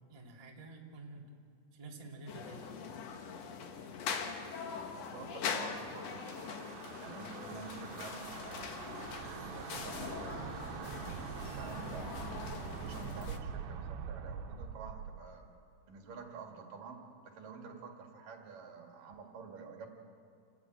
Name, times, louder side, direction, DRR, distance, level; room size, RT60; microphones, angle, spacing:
voice 1, 0.1-1.3 1.7-2.7, right 3 dB, 15° right, -1 dB, 1.5 m, -49 dB
sound 1, 2.3-13.4, left 6 dB, 60° left, 1.9 m, -42 dB
voice 2, 4.9-6.6 7.0-8.7 9.2-15.4 15.9-19.9, right 5 dB, 60° right, 2 dB, 3.5 m, -49 dB
sound 2, 5.6-15.2, right 7 dB, 80° right, 3.0 m, -44 dB
28.5 x 15.0 x 9.1 m, 2.4 s
omnidirectional pair, 4.5 m